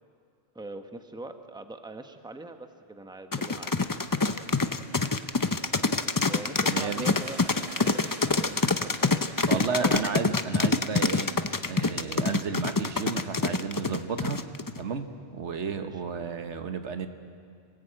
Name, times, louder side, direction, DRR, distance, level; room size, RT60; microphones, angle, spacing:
voice 1, 0.5-3.8 6.3-10.2 15.7-16.0, right 2 dB, 5° right, 6 dB, 1.1 m, -43 dB
sound 1, 3.3-14.8, left 3 dB, 25° left, 0.5 m, -25 dB
sound 2, 3.8-9.7, right 2 dB, 30° right, 1.4 m, -49 dB
voice 2, 6.7-7.1 9.5-11.4 11.6-14.4 14.8-17.1, right 5 dB, 85° right, 8 dB, 1.5 m, -33 dB
26.0 x 18.0 x 8.8 m, 2.2 s
omnidirectional pair, 1.2 m